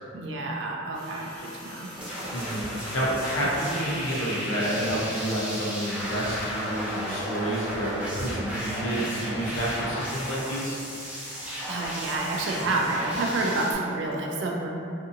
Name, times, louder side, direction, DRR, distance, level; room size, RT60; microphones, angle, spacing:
voice 1, 0.1-1.9 11.3-14.7, right 2 dB, 60° right, -1 dB, 0.4 m, -29 dB
sound 1, 0.9-4.8 6.0-6.2, equal, 25° left, 1.1 m, -43 dB
sound 2, 2.0-13.7, equal, 5° right, 0.5 m, -34 dB
voice 2, 2.3-10.8, right 1 dB, 80° left, -6 dB, 0.7 m, -29 dB
2.6 x 2.6 x 2.5 m, 2.6 s
head